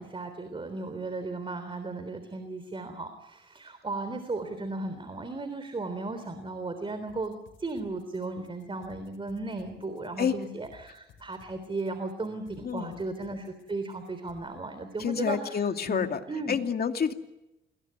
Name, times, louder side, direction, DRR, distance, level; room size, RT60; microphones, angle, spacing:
voice 1, 0.0-15.6 15.9-16.6, right 2 dB, 25° right, 8 dB, 3.5 m, -36 dB
sound 1, 7.1-14.4, left 6 dB, 80° left, 6.5 m, -57 dB
voice 2, 12.6-13.0 15.0-16.2 16.5-17.1, left 7 dB, 50° left, 6 dB, 2.5 m, -28 dB
28.5 x 21.5 x 9.7 m, 0.95 s
cardioid pair, 90°, 20 cm